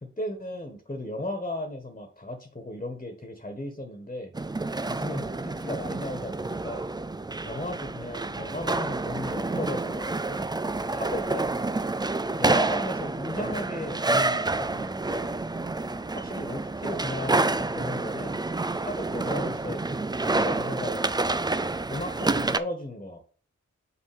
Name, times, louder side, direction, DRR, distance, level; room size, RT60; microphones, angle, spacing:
voice 1, 0.0-4.3 4.9-6.9 7.4-10.5 10.9-11.6 12.4-15.4 16.1-18.4 18.8-21.4 21.9-23.2, left 1 dB, 25° left, 5 dB, 1.6 m, -36 dB
sound 1, 4.3-22.6, right 2 dB, 15° right, 0.4 m, -28 dB
5.9 x 4.4 x 5.1 m, 0.40 s
cardioid pair, 45°, 30 cm